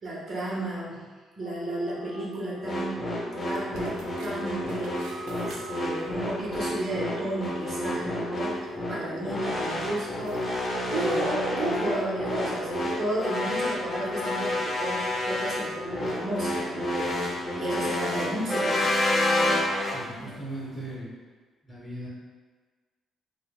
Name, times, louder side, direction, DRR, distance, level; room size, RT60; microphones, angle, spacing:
voice 1, 0.0-1.0 1.4-5.0 5.3-8.6 8.9-18.8 19.3-19.9 20.2-20.4, right 1 dB, 50° right, -5 dB, 0.9 m, -34 dB
Wind instrument woodwind instrument, 1.2-18.6, left 3 dB, 70° left, 0.5 m, -43 dB
sound 1, 2.6-20.0, left 1 dB, 35° left, 0.8 m, -29 dB
sound 2, 3.4-21.0, right 2 dB, 85° right, 0.3 m, -40 dB
voice 2, 19.9-21.1 21.6-22.1, right 1 dB, 10° left, -8 dB, 1.1 m, -38 dB
3.2 x 2.1 x 2.3 m, 1.4 s
cardioid pair, 90°, 0 cm